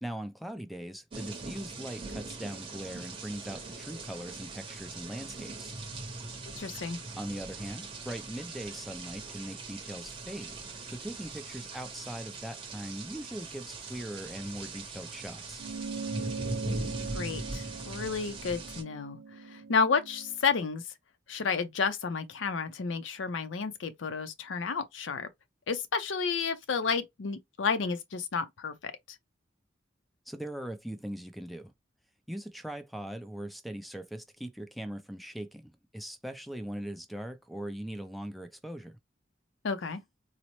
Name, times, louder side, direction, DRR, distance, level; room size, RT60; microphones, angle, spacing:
voice 1, 0.0-5.7 7.2-15.6 30.3-31.7 32.3-39.0, right 1 dB, ahead, 0.4 m, -40 dB
sound 1, 1.1-18.8, right 3 dB, 30° right, 0.8 m, -41 dB
voice 2, 6.6-7.0 17.1-19.2 19.5-20.8 21.3-25.3 25.7-28.9 39.6-40.0, left 5 dB, 85° left, 0.6 m, -31 dB
sound 2, 15.6-20.4, right 4 dB, 65° right, 0.6 m, -41 dB
4.0 x 2.0 x 3.0 m
head